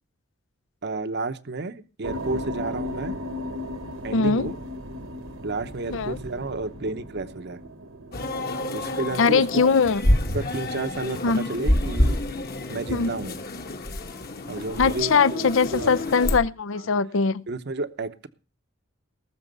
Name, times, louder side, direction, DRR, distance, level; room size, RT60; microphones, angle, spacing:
voice 1, 0.8-3.2 4.0-4.6 5.4-7.6 8.7-9.7 10.3-12.2 12.7-13.4 14.5-15.9 16.7-16.9 17.5-18.3, right 3 dB, 60° right, 0.9 m, -31 dB
sound 1, 2.0-10.4, left 1 dB, 75° right, 1.4 m, -37 dB
voice 2, 4.1-4.5 5.9-6.2 9.2-10.0 11.2-11.5 12.9-13.1 14.8-17.4, left 5 dB, 70° left, 0.6 m, -21 dB
sound 2, 8.1-16.4, left 1 dB, 50° left, 1.5 m, -27 dB
19.0 x 7.1 x 5.3 m
head